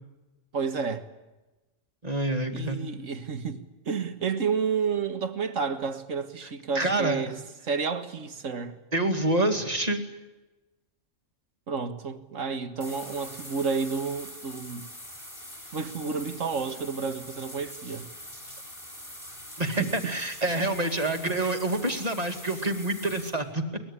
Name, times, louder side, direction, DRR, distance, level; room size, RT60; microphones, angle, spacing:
voice 1, 0.5-1.0 2.5-8.8 11.7-14.9 15.7-18.1 19.8-20.1, right 5 dB, 80° right, 2.0 m, -31 dB
voice 2, 2.0-2.9 6.7-7.2 8.9-10.0 19.6-23.8, right 2 dB, 30° right, 2.5 m, -27 dB
sound 1, 12.8-23.3, equal, 20° left, 6.8 m, -43 dB
23.5 x 20.5 x 9.9 m
omnidirectional pair, 1.3 m